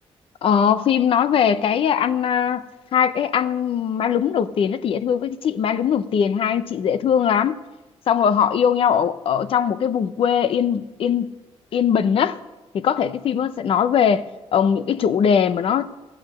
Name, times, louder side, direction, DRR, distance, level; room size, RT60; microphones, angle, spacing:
voice 1, 0.4-2.6 2.9-7.6 8.1-11.3 11.7-12.4 12.7-14.3 14.5-15.9, left 8 dB, 60° left, 0.7 m, -20 dB
15.5 x 8.6 x 6.3 m
cardioid pair, 145°, 11 cm